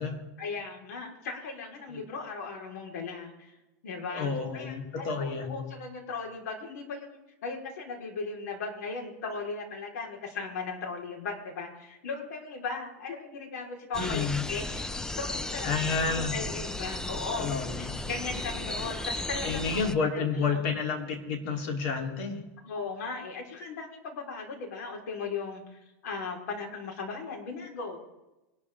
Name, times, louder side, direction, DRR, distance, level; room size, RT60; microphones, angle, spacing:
voice 1, 0.4-3.6 3.8-17.5 17.8-19.7 20.1-20.6 22.6-28.0, left 4 dB, 80° left, 1 dB, 4.6 m, -37 dB
voice 2, 4.1-5.6 14.0-14.4 15.6-16.4 17.4-17.9 19.4-22.4, left 5 dB, 60° left, 3 dB, 3.7 m, -30 dB
sound 1, 13.9-19.9, left 2 dB, 5° left, 0.6 m, -35 dB
24.0 x 12.5 x 3.7 m, 1.0 s
supercardioid pair, 135°, 9 cm